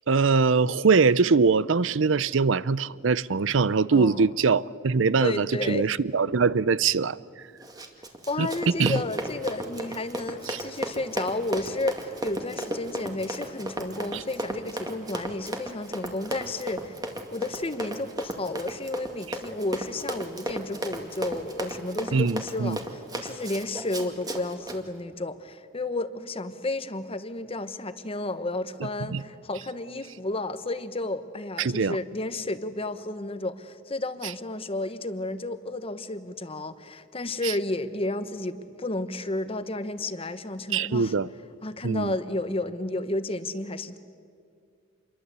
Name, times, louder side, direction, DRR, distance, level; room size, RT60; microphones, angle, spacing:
voice 1, 0.1-7.2 8.4-8.5 8.8-9.0 10.5-10.6 22.1-22.8 29.1-29.2 31.6-32.0 40.7-41.3 41.8-42.1, right 4 dB, 75° right, 0.6 m, -22 dB
voice 2, 3.9-4.3 5.2-5.9 8.3-17.0 17.3-41.1 41.6-44.0, left 2 dB, 30° left, 1.1 m, -32 dB
Run, 7.6-24.8, right 1 dB, 20° right, 2.2 m, -35 dB
27.5 x 22.5 x 8.2 m
head